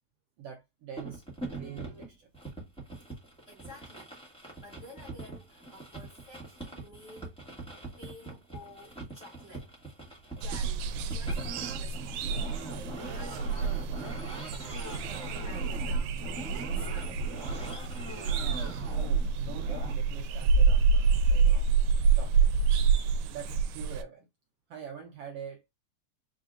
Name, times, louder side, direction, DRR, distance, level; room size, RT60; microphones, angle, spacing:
voice 1, 0.4-1.2 1.5-2.3 18.9-21.7 22.1-22.5 23.3-24.3 24.7-25.7, right 7 dB, 70° right, 1.6 m, -44 dB
sound 1, 1.0-19.9, right 2 dB, ahead, 1.4 m, -42 dB
voice 2, 3.5-7.3 8.0-9.7 10.4-12.3 12.7-17.3, left 1 dB, 30° left, 1.6 m, -52 dB
sound 2, 10.4-24.0, right 5 dB, 90° right, 2.1 m, -27 dB
sound 3, 13.6-15.4, right 6 dB, 55° left, 2.1 m, -57 dB
5.4 x 3.7 x 2.5 m
omnidirectional pair, 3.5 m